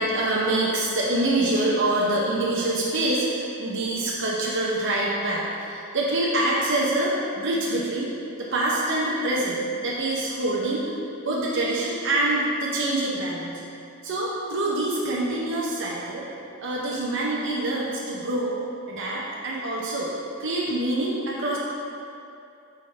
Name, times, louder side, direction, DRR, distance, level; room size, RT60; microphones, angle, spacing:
voice 1, 0.0-8.1 8.4-10.9 11.2-13.6 14.0-16.3 16.6-18.6 18.9-20.1 20.4-21.6, right 1 dB, 55° right, -5 dB, 0.7 m, -25 dB
8.9 x 3.5 x 3.3 m, 2.6 s
head